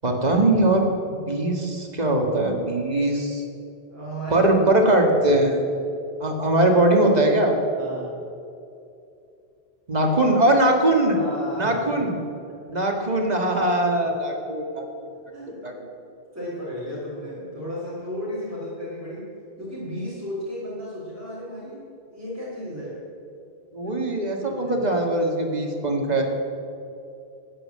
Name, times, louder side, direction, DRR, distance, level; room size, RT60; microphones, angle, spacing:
voice 1, 0.0-3.4 4.3-5.6 6.2-7.5 9.9-11.2 11.6-12.2 12.7-14.9 15.6-15.7 23.7-26.2, right 1 dB, 40° right, 2 dB, 1.8 m, -21 dB
voice 2, 3.9-4.5 7.8-8.2 10.0-10.1 11.1-11.9 15.3-15.6 16.3-19.3 19.6-21.8 22.1-23.0 23.8-24.0 24.4-24.8, equal, 15° right, -8 dB, 3.5 m, -34 dB
12.5 x 9.3 x 7.4 m, 2.7 s
omnidirectional pair, 1.1 m